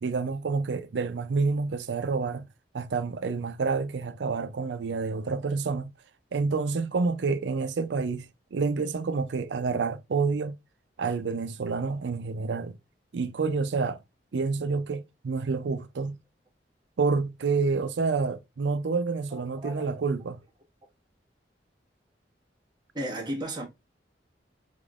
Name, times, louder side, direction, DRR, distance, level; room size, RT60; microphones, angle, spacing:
voice 1, 0.0-2.5 2.7-5.9 6.3-10.5 11.0-12.8 13.1-14.0 14.3-16.2 17.0-20.4, right 4 dB, 85° right, 0.5 m, -28 dB
voice 2, 19.3-19.9 22.9-23.6, right 1 dB, 25° right, 1.5 m, -34 dB
3.6 x 3.5 x 2.4 m
head